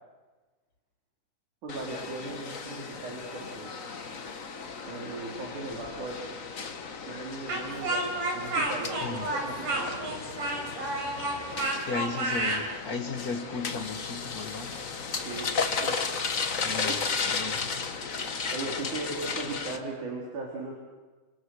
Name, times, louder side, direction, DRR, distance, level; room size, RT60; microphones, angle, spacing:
voice 1, 1.6-3.7 4.9-6.3 7.1-10.2 15.2-16.0 16.8-16.9 18.5-20.7, right 3 dB, 65° right, -2 dB, 5.4 m, -38 dB
sound 1, 1.7-19.8, left 5 dB, 55° left, 0.9 m, -35 dB
Speech, 7.5-12.6, right 2 dB, 85° right, 5.5 m, -30 dB
voice 2, 9.0-9.3 11.8-14.8 16.6-17.9 19.1-19.2, left 4 dB, 35° left, 6 dB, 1.7 m, -36 dB
29.5 x 26.5 x 6.5 m, 1.3 s
omnidirectional pair, 3.7 m